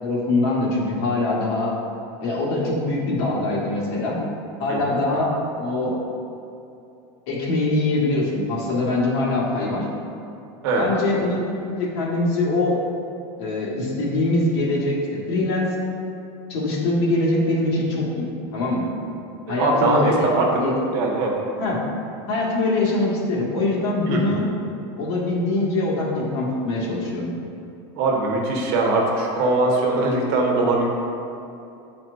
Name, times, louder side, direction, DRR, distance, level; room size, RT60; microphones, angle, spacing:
voice 1, 0.0-1.7 2.2-4.2 4.6-6.0 7.3-9.9 10.8-12.8 13.4-15.7 16.5-18.9 19.5-20.7 21.6-21.8 22.3-24.5 25.0-27.3, left 2 dB, 70° left, -4 dB, 1.5 m, -23 dB
voice 2, 19.5-20.5 20.9-21.3 24.1-24.3 28.0-30.9, right 2 dB, 60° right, -1 dB, 1.1 m, -21 dB
9.0 x 4.2 x 2.5 m, 2.7 s
supercardioid pair, 160°, 14 cm